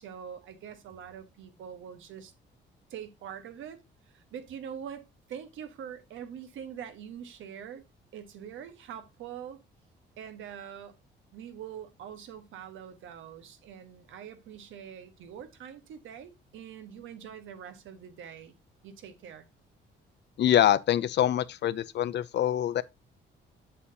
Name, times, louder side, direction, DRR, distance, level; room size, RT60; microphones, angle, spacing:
voice 1, 0.0-2.3 2.9-7.8 8.1-9.6 10.2-11.0 11.3-18.6 18.8-19.4, right 8 dB, 80° right, 1.2 m, -44 dB
voice 2, 20.4-22.8, left 11 dB, 60° left, 0.5 m, -25 dB
7.3 x 6.8 x 2.7 m
cardioid pair, 90°, 20 cm